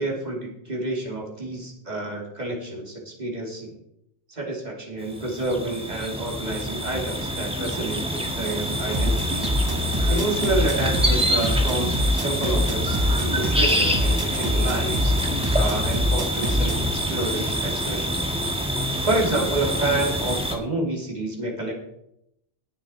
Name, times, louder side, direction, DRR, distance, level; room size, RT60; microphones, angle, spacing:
voice 1, 0.0-3.8 4.3-9.4 10.1-15.2 15.5-18.2 19.0-21.7, right 2 dB, 35° right, -1 dB, 3.0 m, -29 dB
sound 1, 5.0-20.6, equal, 5° right, 1.6 m, -26 dB
sound 2, 8.9-16.9, left 1 dB, 20° right, 1.0 m, -25 dB
19.0 x 6.7 x 4.4 m, 0.78 s
omnidirectional pair, 1.2 m